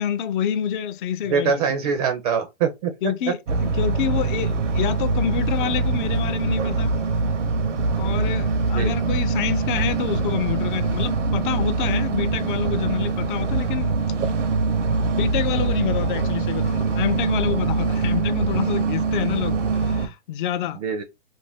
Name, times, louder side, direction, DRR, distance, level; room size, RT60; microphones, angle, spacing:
voice 1, 0.0-1.6 3.0-3.4 3.7-6.9 7.9-13.9 15.0-20.8, left 9 dB, 45° left, 0.4 m, -27 dB
voice 2, 1.3-2.9 8.7-8.9 20.7-21.0, right 6 dB, 35° right, 0.4 m, -23 dB
sound 1, 3.5-20.1, right 4 dB, 85° right, 0.7 m, -23 dB
2.6 x 2.1 x 3.3 m
hypercardioid pair, 130°, 36 cm